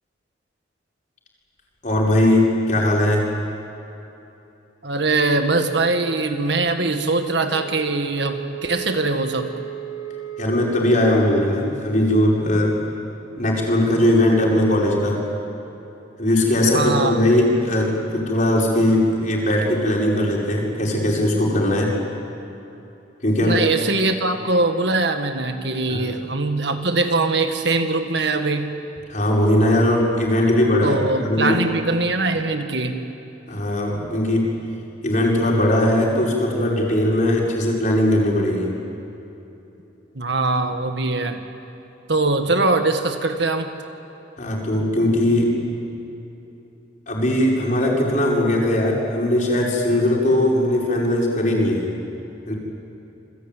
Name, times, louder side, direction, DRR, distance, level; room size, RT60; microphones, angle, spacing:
voice 1, 1.8-3.2 10.4-12.7 13.4-15.2 16.2-21.9 23.2-23.6 25.9-26.1 29.1-31.0 31.2-31.6 33.5-34.5 35.0-38.7 44.4-45.5 47.1-51.8 52.5-52.6, left 1 dB, 40° left, -2 dB, 5.6 m, -19 dB
voice 2, 4.8-9.5 16.7-17.2 23.4-28.7 30.8-33.0 40.2-41.4 42.1-43.7, right 3 dB, 65° right, 6 dB, 1.9 m, -22 dB
Wind instrument woodwind instrument, 7.5-11.6, right 10 dB, 85° left, 2.7 m, -35 dB
28.5 x 21.0 x 9.3 m, 3.0 s
head